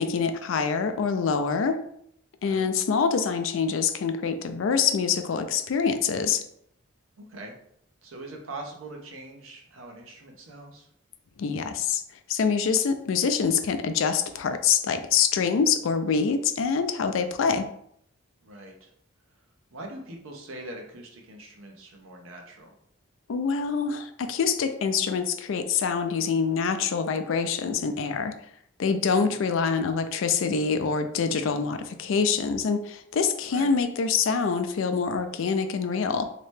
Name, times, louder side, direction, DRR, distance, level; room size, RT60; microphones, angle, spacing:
voice 1, 0.0-1.8 2.4-6.4 11.4-12.0 12.3-17.7 23.3-28.3 28.8-36.2, left 6 dB, 75° left, 8 dB, 0.4 m, -25 dB
voice 2, 7.2-7.5 8.0-10.9 18.4-18.9 19.7-22.7 29.0-29.4 33.5-33.7, right 2 dB, 80° right, 1 dB, 0.8 m, -42 dB
3.2 x 2.9 x 3.2 m, 0.70 s
head